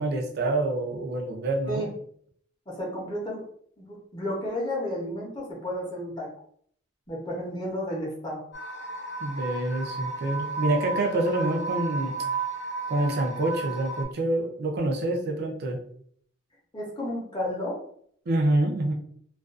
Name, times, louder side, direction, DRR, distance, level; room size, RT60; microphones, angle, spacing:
voice 1, 0.0-1.9 9.2-12.2 12.9-15.8 18.3-18.9, right 2 dB, 55° right, 2 dB, 0.5 m, -27 dB
voice 2, 2.7-3.4 3.8-6.3 7.1-8.4 16.7-17.8, left 1 dB, 25° left, -3 dB, 0.7 m, -32 dB
sound 1, 8.5-14.0, right 4 dB, 60° left, 0.7 m, -33 dB
2.4 x 2.3 x 2.4 m, 0.63 s
head